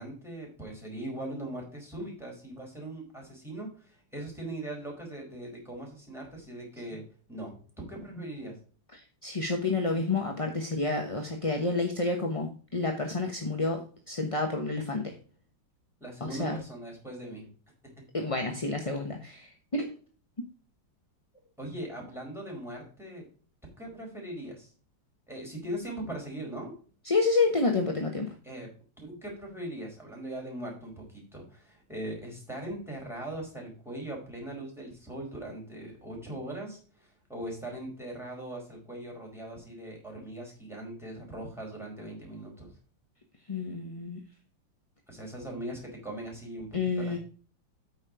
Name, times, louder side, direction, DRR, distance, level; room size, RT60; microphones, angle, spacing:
voice 1, 0.0-7.0 7.3-8.5 16.0-17.5 17.8-18.0 21.6-23.3 23.8-24.7 25.3-26.7 28.4-28.7 29.0-42.7 45.1-47.2, right 1 dB, ahead, -1 dB, 4.9 m, -40 dB
voice 2, 8.9-15.1 16.2-16.6 18.1-19.9 27.0-28.3 43.5-44.2 46.7-47.2, left 3 dB, 25° left, 3 dB, 0.9 m, -29 dB
9.1 x 6.4 x 4.8 m, 0.40 s
omnidirectional pair, 2.0 m